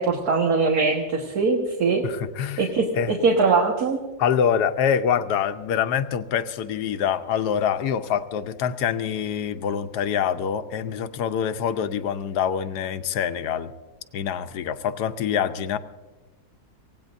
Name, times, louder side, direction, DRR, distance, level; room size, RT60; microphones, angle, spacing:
voice 1, 0.0-2.1 2.6-4.0, right 4 dB, 70° right, -1 dB, 2.0 m, -22 dB
voice 2, 2.0-2.6 3.0-3.1 4.2-13.7 14.1-15.8, left 8 dB, 85° left, 10 dB, 1.3 m, -25 dB
24.5 x 17.5 x 2.6 m, 1.2 s
omnidirectional pair, 1.7 m